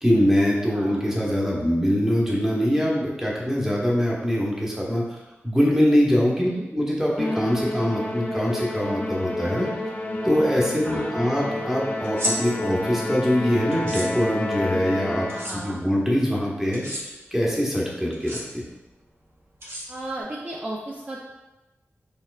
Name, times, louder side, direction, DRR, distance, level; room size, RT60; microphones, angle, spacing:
voice 1, 0.0-5.0 5.4-9.7 10.2-15.3 15.5-18.6, equal, 10° right, -4 dB, 1.0 m, -23 dB
voice 2, 0.7-1.0 6.4-6.7 10.8-11.1 15.3-15.8 19.9-21.2, right 1 dB, 30° right, -4 dB, 0.5 m, -35 dB
Musical instrument, 7.2-15.7, left 1 dB, 35° left, 0.5 m, -29 dB
sound 1, 12.0-12.3 13.7-14.1 15.3-15.5 16.7-17.0 18.1-18.4 19.6-20.2, equal, 55° right, 1.0 m, -30 dB
4.3 x 3.7 x 2.4 m, 1.0 s
wide cardioid pair, 85°, 5 cm